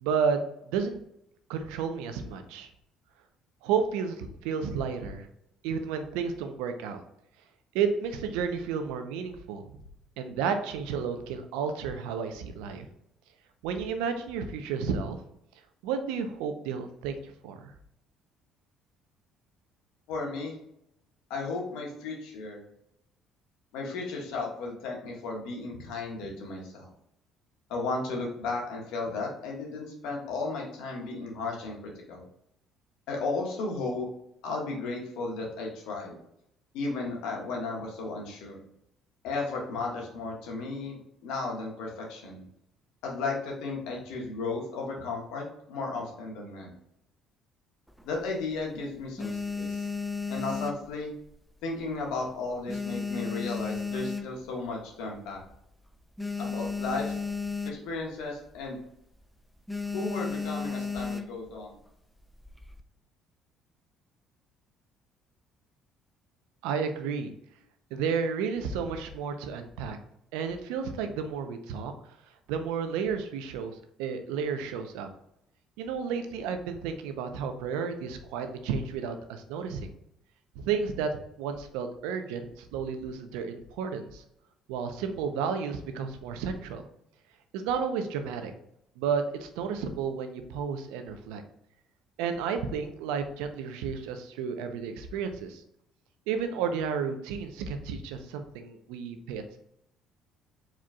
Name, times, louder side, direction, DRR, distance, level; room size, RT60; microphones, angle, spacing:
voice 1, 0.0-1.0 1.5-2.7 3.6-5.3 5.6-7.0 7.7-9.7 10.2-12.9 13.6-15.2 15.8-17.2 17.4-17.7 66.6-67.3 67.9-70.0 70.3-71.9 72.5-75.1 75.8-79.9 80.6-81.1 81.4-84.2 84.7-86.8 87.5-88.5 89.0-91.4 92.2-95.6 96.3-99.4, right 6 dB, 80° right, 7 dB, 0.6 m, -32 dB
voice 2, 20.1-20.5 21.3-22.6 23.7-26.9 27.7-32.3 33.1-34.1 34.4-36.2 36.7-38.6 39.2-42.4 43.0-46.7 48.0-49.8 50.3-51.1 51.6-55.4 56.4-57.1 57.6-58.8 59.9-61.7, left 3 dB, 75° left, -1 dB, 1.5 m, -34 dB
sound 1, 47.9-48.6 49.0-51.5 51.8-52.2 52.4-54.7 55.2-55.3 55.4-55.6 55.9-58.1 58.4-58.6 59.0-59.2 59.7-61.5 62.2-62.8, left 4 dB, ahead, 0.5 m, -34 dB
4.8 x 4.4 x 2.3 m, 0.78 s
supercardioid pair, 70°, 0 cm